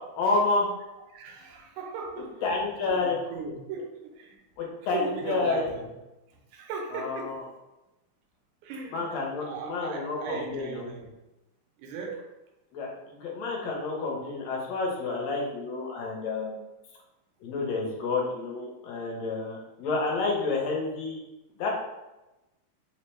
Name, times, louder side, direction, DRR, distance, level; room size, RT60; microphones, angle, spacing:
voice 1, 0.2-0.7 2.4-3.2 4.6-5.6 6.9-7.4 8.9-10.9 12.7-16.6 17.4-21.2 21.6-21.7, left 3 dB, 75° left, -2 dB, 1.8 m, -29 dB
voice 2, 1.1-2.4 2.9-4.4 4.9-5.9 6.3-7.4 8.6-9.1 9.4-11.2 11.8-12.3, right 4 dB, 85° right, 1 dB, 2.0 m, -37 dB
4.6 x 2.1 x 3.1 m, 0.99 s
omnidirectional pair, 3.4 m